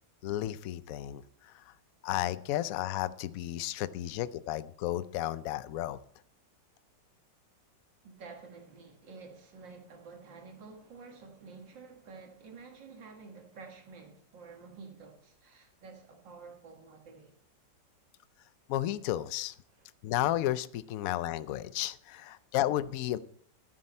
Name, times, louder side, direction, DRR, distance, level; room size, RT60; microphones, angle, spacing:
voice 1, 0.2-1.7 2.0-6.0 18.7-19.6 20.0-23.2, left 13 dB, 70° left, 0.8 m, -33 dB
voice 2, 8.0-17.4 19.7-19.9, right 4 dB, 85° right, 2.4 m, -50 dB
11.5 x 9.9 x 4.3 m
omnidirectional pair, 1.9 m